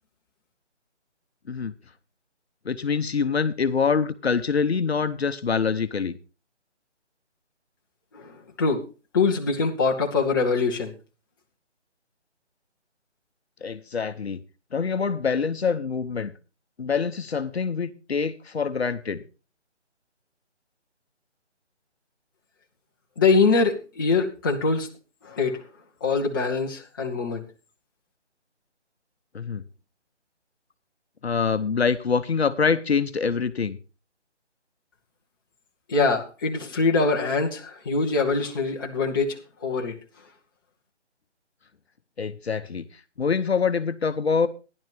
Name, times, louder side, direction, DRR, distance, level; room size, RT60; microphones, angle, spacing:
voice 1, 2.6-6.2 13.6-14.4 14.7-16.3 16.8-19.2 29.3-29.6 31.2-33.8 42.2-42.9 43.2-44.5, left 5 dB, 60° left, 0.9 m, -25 dB
voice 2, 9.1-10.9 23.2-24.9 25.2-25.6 26.0-27.4 35.9-39.4 39.6-39.9, left 4 dB, 20° left, 0.9 m, -23 dB
14.0 x 11.0 x 3.5 m
figure-of-eight pair, 160°, 35 cm